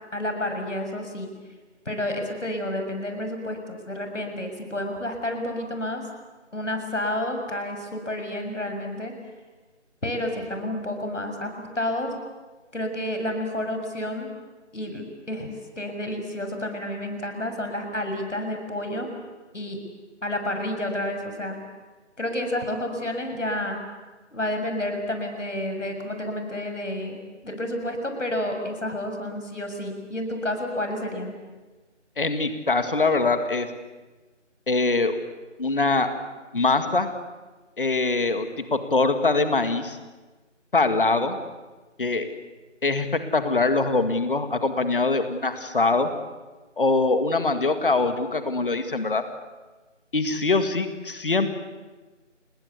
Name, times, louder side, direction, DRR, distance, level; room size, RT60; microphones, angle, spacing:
voice 1, 0.1-1.3 1.8-6.1 6.5-9.1 10.0-12.1 12.7-14.3 14.7-19.1 19.5-19.8 20.2-21.6 22.2-23.8 24.3-27.2 27.4-31.4, left 1 dB, 75° left, 5 dB, 6.8 m, -30 dB
voice 2, 32.2-33.7 34.7-35.2 35.6-36.1 36.5-37.1 37.8-40.0 40.7-41.4 42.0-42.3 42.8-43.1 43.3-46.1 46.8-49.2 50.1-51.5, left 3 dB, 45° left, 9 dB, 2.0 m, -23 dB
29.5 x 21.0 x 8.4 m, 1.2 s
figure-of-eight pair, 165°, 37 cm